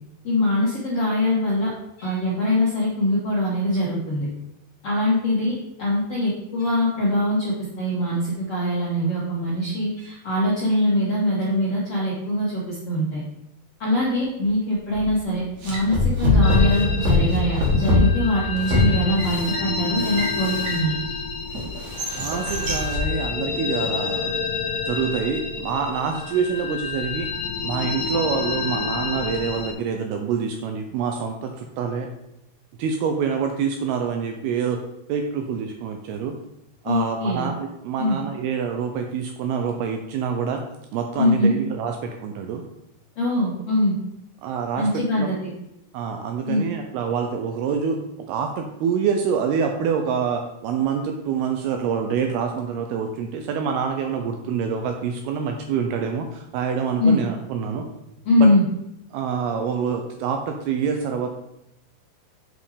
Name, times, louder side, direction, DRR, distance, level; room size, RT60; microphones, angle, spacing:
voice 1, 0.2-1.7 2.0-4.3 4.8-5.5 5.8-13.2 13.8-21.0 36.8-37.4 38.0-38.2 41.2-41.5 43.1-43.9 44.8-45.3 46.5-46.6 57.0-57.2 58.2-58.6, left 1 dB, 55° left, -6 dB, 1.7 m, -22 dB
sound 1, 15.0-15.2 15.6-21.1 21.5-23.1, left 2 dB, 50° right, 2.5 m, -22 dB
sound 2, 16.4-29.7, left 5 dB, 75° left, 3.1 m, -29 dB
voice 2, 22.2-24.4 24.9-27.3 27.6-32.1 32.8-34.8 35.1-36.4 36.8-40.6 40.9-42.6 44.4-45.3 45.9-48.0 48.3-57.9 58.4-58.5 59.1-61.3, right 6 dB, 80° right, 4 dB, 2.3 m, -26 dB
7.9 x 5.3 x 4.9 m, 0.86 s
omnidirectional pair, 5.1 m